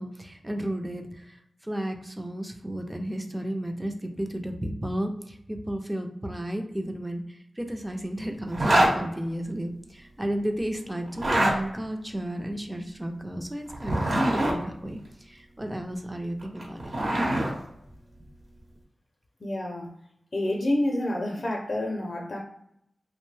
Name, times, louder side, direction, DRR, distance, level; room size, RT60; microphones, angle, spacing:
voice 1, 0.0-16.9, right 1 dB, 15° right, 4 dB, 0.5 m, -33 dB
Zipper (clothing), 8.5-8.9 11.1-11.5 13.7-14.5 16.4-17.5, right 1 dB, 65° right, 1.0 m, -23 dB
voice 2, 19.4-19.9 20.3-22.4, left 1 dB, 55° left, 0 dB, 0.5 m, -28 dB
2.6 x 2.1 x 3.2 m, 0.75 s
cardioid pair, 55°, 0 cm